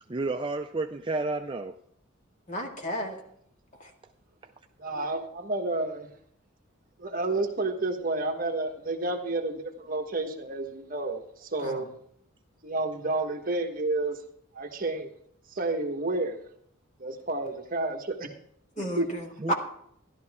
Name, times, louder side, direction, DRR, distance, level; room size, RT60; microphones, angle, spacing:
voice 1, 0.1-1.7 4.4-4.5 19.4-19.5, right 2 dB, 25° right, 5 dB, 0.4 m, -31 dB
voice 2, 2.5-3.2 3.8-3.9 11.6-11.8 18.8-19.5, equal, 35° left, 2 dB, 2.0 m, -32 dB
voice 3, 4.8-6.1 7.0-11.9 12.6-14.2 14.5-15.1 15.5-16.4 17.0-18.3 18.8-19.1, right 2 dB, 40° right, 3 dB, 1.3 m, -30 dB
13.5 x 11.5 x 3.6 m, 0.69 s
head